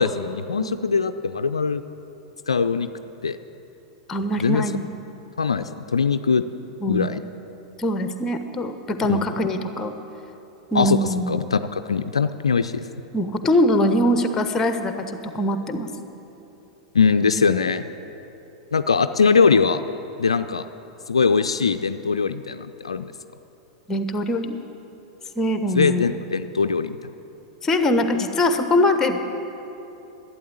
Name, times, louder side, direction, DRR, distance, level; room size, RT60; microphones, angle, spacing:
voice 1, 0.0-1.8 2.5-2.9 3.2-3.4 4.4-4.6 5.4-6.4 6.9-7.2 9.1-9.2 10.7-11.0 11.3-12.8 16.9-17.8 18.7-19.8 20.2-20.6 21.1-23.1 25.7-27.0, left 5 dB, 75° left, 10 dB, 0.4 m, -21 dB
voice 2, 4.1-4.9 6.8-7.1 7.8-9.9 10.7-11.3 13.1-15.9 23.9-24.6 25.4-26.1 27.6-29.3, left 1 dB, 15° left, 8 dB, 1.0 m, -22 dB
12.0 x 8.9 x 8.7 m, 3.0 s
figure-of-eight pair, 95°, 3 cm